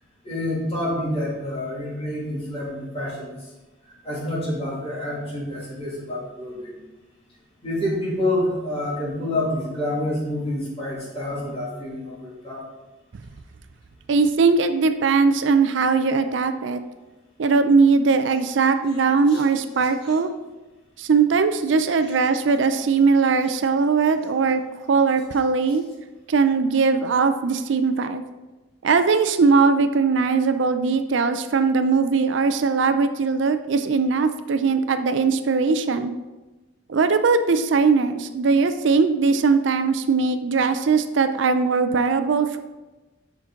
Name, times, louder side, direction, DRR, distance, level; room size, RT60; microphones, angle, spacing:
voice 1, 0.2-3.5 4.0-6.8 7.6-12.6 19.3-19.4 20.1-20.2, left 1 dB, 30° left, -6 dB, 2.5 m, -28 dB
voice 2, 14.1-16.8 17.4-20.3 21.0-24.6 24.9-25.8 26.3-28.2 28.8-36.1 36.9-42.6, right 4 dB, 70° right, 9 dB, 0.5 m, -20 dB
7.2 x 5.9 x 3.7 m, 1.1 s
head